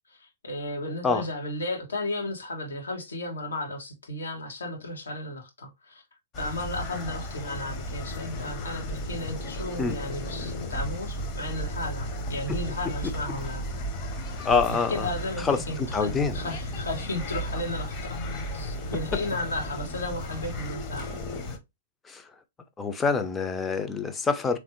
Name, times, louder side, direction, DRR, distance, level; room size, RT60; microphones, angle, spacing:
voice 1, 0.1-6.0 6.4-13.6 14.7-18.2 18.5-21.2, left 1 dB, 80° left, 1.6 m, -34 dB
sound 1, 6.3-21.6, left 1 dB, 35° left, 1.0 m, -34 dB
voice 2, 14.4-15.1 15.4-15.6 15.9-16.4 22.1-22.2 22.8-24.6, left 4 dB, 15° left, 0.6 m, -25 dB
3.5 x 3.1 x 3.0 m
hypercardioid pair, 115°, 0 cm